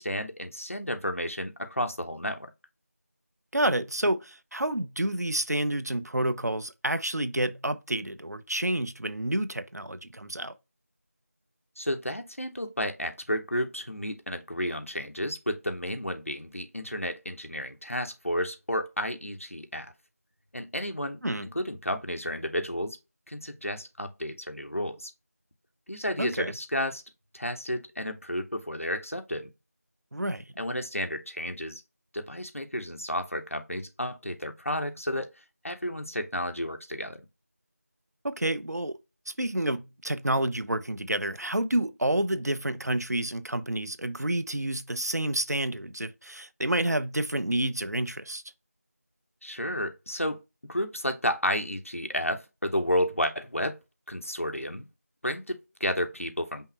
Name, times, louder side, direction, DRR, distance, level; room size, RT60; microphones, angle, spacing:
voice 1, 0.0-2.5 11.8-19.9 20.5-23.0 23.3-25.1 25.9-27.0 27.3-29.5 30.6-31.8 32.1-35.3 35.6-37.2 49.4-50.4 50.7-53.8 54.1-54.9 55.2-56.7, equal, 55° left, 0.9 m, -32 dB
voice 2, 3.5-10.5 21.2-21.5 26.2-26.5 30.1-30.5 38.2-39.0 39.3-48.4, right 1 dB, 80° right, 0.6 m, -29 dB
5.6 x 2.1 x 4.4 m
figure-of-eight pair, 180°, 9 cm